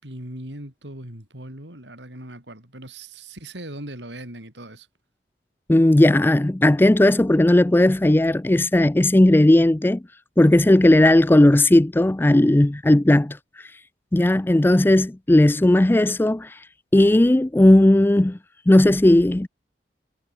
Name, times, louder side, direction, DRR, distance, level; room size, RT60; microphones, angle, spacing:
voice 1, 0.0-4.9, right 1 dB, 85° right, 7.4 m, -39 dB
voice 2, 5.7-10.0 10.4-13.4 14.1-16.6 16.9-18.4 18.7-19.5, left 1 dB, 10° left, 0.4 m, -16 dB
head